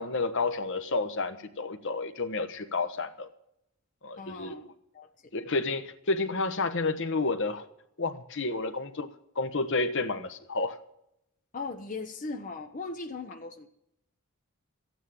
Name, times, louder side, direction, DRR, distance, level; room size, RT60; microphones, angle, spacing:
voice 1, 0.0-3.3 4.0-4.5 5.3-7.7 8.0-9.1 9.3-10.8, left 3 dB, 55° left, 8 dB, 1.1 m, -30 dB
voice 2, 4.2-4.7 4.9-5.1 11.5-13.7, left 3 dB, 35° left, 4 dB, 0.9 m, -38 dB
14.0 x 9.2 x 7.7 m, 0.78 s
head